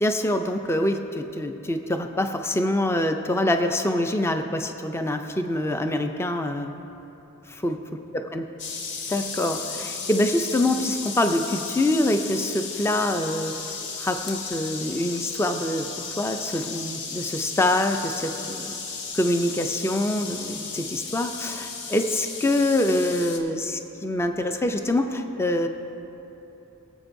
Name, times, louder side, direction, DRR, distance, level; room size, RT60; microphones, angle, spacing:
voice 1, 0.0-6.7 7.5-7.8 8.3-8.4 9.1-13.5 14.0-18.8 19.1-25.7, left 1 dB, 10° left, 6 dB, 0.4 m, -25 dB
sound 1, 8.6-23.4, left 5 dB, 55° left, 0.9 m, -35 dB
19.5 x 8.0 x 2.6 m, 3.0 s
head